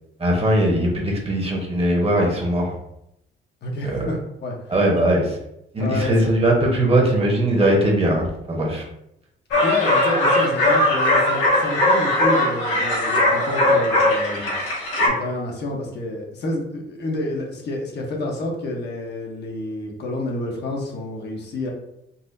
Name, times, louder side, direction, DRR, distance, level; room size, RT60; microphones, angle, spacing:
voice 1, 0.2-2.7 3.8-4.1 4.7-5.4 5.7-8.8, right 1 dB, 30° right, -1 dB, 1.0 m, -20 dB
voice 2, 3.6-4.6 5.8-6.3 9.6-14.5 15.1-21.7, left 2 dB, 60° left, 0 dB, 0.9 m, -28 dB
sound 1, 9.5-15.1, left 1 dB, 85° left, 1.4 m, -19 dB
4.0 x 2.5 x 2.6 m, 0.81 s
cardioid pair, 90°, 20 cm